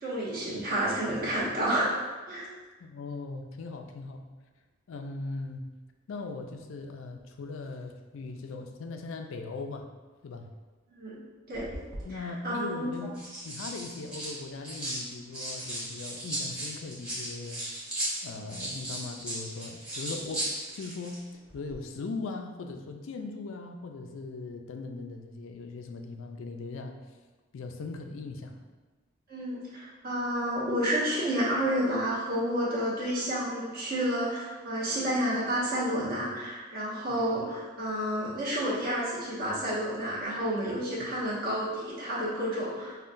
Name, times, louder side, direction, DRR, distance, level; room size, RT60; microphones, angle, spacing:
voice 1, 0.0-1.9 2.3-2.5 10.9-11.2 11.5-11.7 12.1-12.9 29.3-42.9, equal, 45° right, -8 dB, 1.0 m, -30 dB
voice 2, 2.8-4.2 4.9-5.6 6.1-9.9 10.2-10.5 12.0-13.1 13.4-17.7 18.2-21.2 21.5-27.0 27.5-28.5 41.0-41.1, left 3 dB, 65° left, 4 dB, 0.4 m, -39 dB
sound 1, 11.5-12.0 12.9-15.0 15.3-21.2 21.5-21.7, right 1 dB, 5° right, 1.0 m, -36 dB
5.5 x 2.2 x 2.5 m, 1.3 s
head